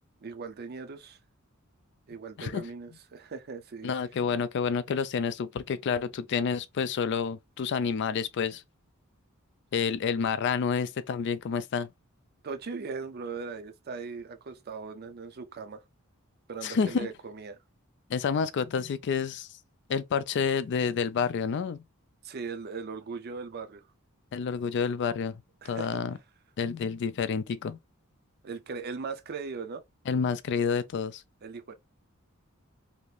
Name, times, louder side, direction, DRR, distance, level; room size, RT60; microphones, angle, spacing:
voice 1, 0.2-1.2 2.1-3.9 12.4-15.8 16.5-17.6 22.2-23.8 25.6-26.0 28.4-29.8 31.4-31.7, right 4 dB, 50° right, 0.5 m, -39 dB
voice 2, 3.8-8.6 9.7-11.9 16.6-17.1 18.1-19.5 19.9-21.8 24.3-26.2 26.6-27.8 30.1-31.2, left 6 dB, 55° left, 0.3 m, -29 dB
2.8 x 2.5 x 3.2 m
head